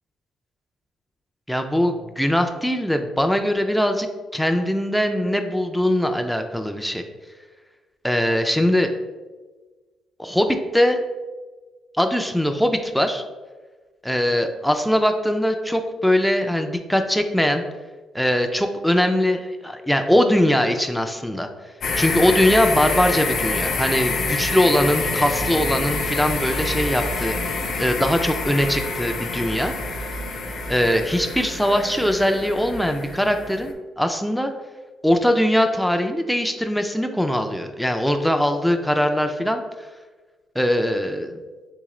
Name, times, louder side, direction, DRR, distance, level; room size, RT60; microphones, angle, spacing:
voice 1, 1.5-4.1 4.3-7.0 8.0-8.9 10.2-11.0 12.0-13.2 14.0-17.6 18.1-21.5 22.0-27.3 27.8-29.7 30.7-34.5 35.0-39.6 40.6-41.4, equal, ahead, 5 dB, 0.3 m, -21 dB
sound 1, 21.8-33.7, left 3 dB, 65° left, 0.5 m, -27 dB
3.7 x 2.8 x 3.0 m, 1.3 s
cardioid pair, 90°, 0 cm